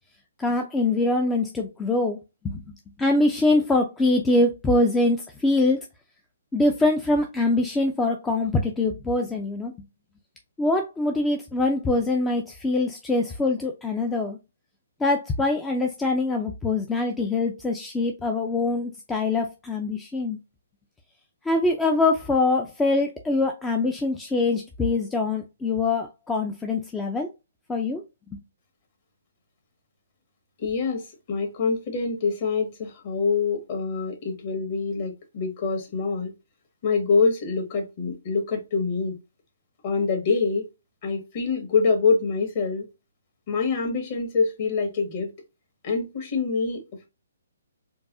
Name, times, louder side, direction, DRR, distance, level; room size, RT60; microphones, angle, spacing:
voice 1, 0.4-2.2 2.4-2.6 3.0-5.8 6.5-9.7 10.6-14.4 15.0-20.4 21.4-27.3 27.7-28.0, left 2 dB, 10° left, 0.5 m, -24 dB
voice 2, 30.6-36.3 36.8-39.2 39.8-40.7 41.0-42.9 43.5-45.3 45.8-47.1, left 4 dB, 40° left, 1.7 m, -25 dB
4.6 x 2.6 x 2.6 m
figure-of-eight pair, 135°, 0 cm